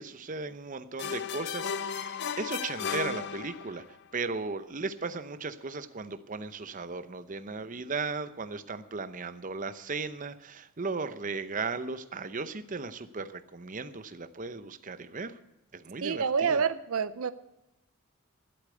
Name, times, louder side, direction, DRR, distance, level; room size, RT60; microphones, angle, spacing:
voice 1, 0.0-3.8 4.1-15.4 15.7-16.6, right 4 dB, 40° right, 11 dB, 0.7 m, -36 dB
sound 1, 1.0-3.9, left 7 dB, 50° left, 0.5 m, -35 dB
voice 2, 16.0-17.3, right 6 dB, 75° right, 14 dB, 0.6 m, -27 dB
12.0 x 8.3 x 8.2 m, 0.88 s
head